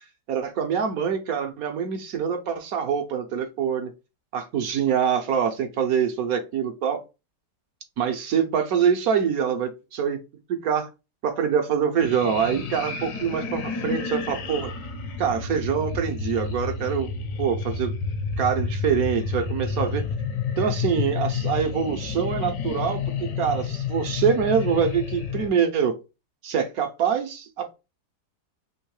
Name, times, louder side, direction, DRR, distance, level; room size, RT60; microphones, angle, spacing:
voice 1, 0.3-3.9 4.3-7.0 8.0-10.2 10.5-10.9 11.2-14.7 15.2-17.1 17.4-17.9 18.4-20.0 20.6-26.0 26.4-27.7, right 7 dB, 65° right, 1.1 m, -25 dB
sound 1, 12.0-25.5, left 5 dB, 70° left, 1.4 m, -30 dB
3.6 x 3.0 x 4.7 m
omnidirectional pair, 1.9 m